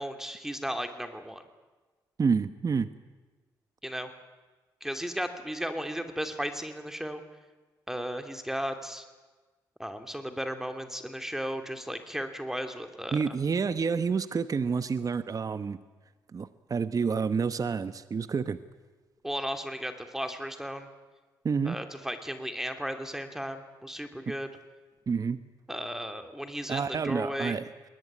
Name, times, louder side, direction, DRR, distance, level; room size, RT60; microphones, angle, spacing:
voice 1, 0.0-1.4 3.8-4.1 4.8-7.2 7.9-9.0 9.8-13.3 19.2-20.9 21.6-24.5 25.7-27.6, equal, 5° right, 6 dB, 2.8 m, -35 dB
voice 2, 2.2-2.9 13.1-15.8 16.3-18.6 21.4-21.8 24.3-24.4 25.1-25.4 26.7-27.9, right 5 dB, 45° right, 12 dB, 1.1 m, -29 dB
21.5 x 20.0 x 9.6 m, 1.3 s
supercardioid pair, 55°, 8 cm